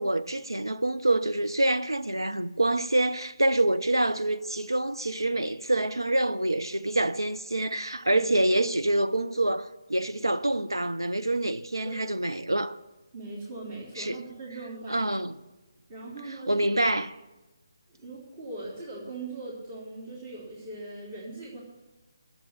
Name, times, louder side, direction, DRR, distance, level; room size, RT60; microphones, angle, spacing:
voice 1, 0.0-12.8 14.0-14.2 14.9-15.4 16.5-17.1, right 1 dB, 90° right, 0.7 m, -26 dB
voice 2, 13.1-15.0 15.9-16.6 18.0-21.6, right 2 dB, 30° right, 3.2 m, -40 dB
11.5 x 7.5 x 9.3 m
figure-of-eight pair, 150°, 2 cm